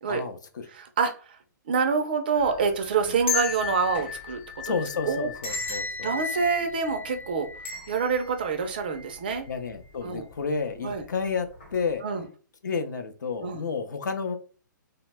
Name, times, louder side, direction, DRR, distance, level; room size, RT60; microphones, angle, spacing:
voice 1, 0.1-0.7 3.0-3.2 4.6-6.1 9.5-12.0 12.6-14.4, left 5 dB, 65° left, 7 dB, 0.6 m, -31 dB
voice 2, 0.7-1.4 1.7-4.7 5.1-5.3 5.7-7.5 7.9-9.5 10.0-10.3 10.8-11.0 12.0-12.2 13.4-13.6, right 5 dB, 30° right, 6 dB, 0.3 m, -27 dB
sound 1, 2.3-9.5 9.9-10.0 10.9-11.2 11.5-11.7, left 5 dB, 35° left, 0.9 m, -35 dB
2.9 x 2.1 x 3.3 m, 0.37 s
hypercardioid pair, 170°, 11 cm